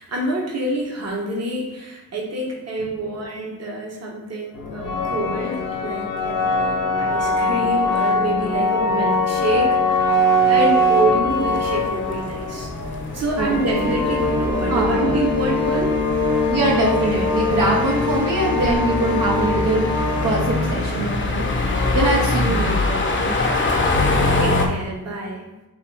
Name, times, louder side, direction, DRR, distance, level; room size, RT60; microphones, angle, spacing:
voice 1, 0.0-10.2 10.5-12.7 13.1-15.9 22.0-22.1 23.8-25.5, right 1 dB, 45° right, -2 dB, 1.2 m, -26 dB
sound 1, 4.5-22.1, left 2 dB, 65° left, 0.7 m, -22 dB
sound 2, 11.3-24.7, left 2 dB, 35° left, 0.8 m, -25 dB
voice 2, 13.4-13.9 14.7-15.2 16.4-21.5 21.9-23.3, right 3 dB, 70° right, -4 dB, 1.1 m, -23 dB
3.7 x 3.0 x 4.8 m, 1.0 s
cardioid pair, 90°, 35 cm